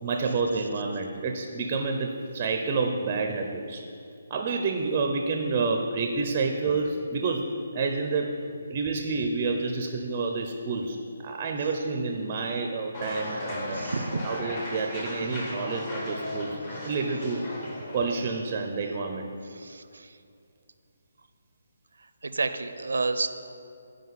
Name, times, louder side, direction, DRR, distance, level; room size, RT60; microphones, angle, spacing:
voice 1, 0.0-3.8 4.3-8.3 8.7-13.8 14.2-16.6 16.8-17.5 17.9-19.3, right 4 dB, 25° right, 3 dB, 0.5 m, -29 dB
sound 1, 12.9-18.3, left 1 dB, 30° left, 1.2 m, -36 dB
voice 2, 13.7-14.2 19.4-20.2 22.0-23.3, right 3 dB, 80° right, 10 dB, 0.5 m, -30 dB
11.0 x 4.9 x 4.0 m, 2.5 s
hypercardioid pair, 165°, 0 cm